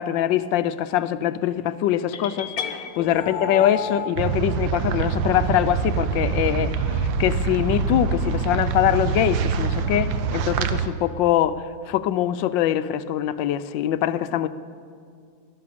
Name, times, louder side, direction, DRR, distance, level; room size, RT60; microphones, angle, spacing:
voice 1, 0.0-14.5, left 11 dB, 80° left, 13 dB, 1.3 m, -23 dB
sound 1, 2.1-4.1, left 5 dB, 55° left, 1.4 m, -31 dB
sound 2, 4.2-10.9, right 6 dB, 85° right, 1.5 m, -25 dB
17.0 x 11.5 x 6.9 m, 2.2 s
omnidirectional pair, 2.0 m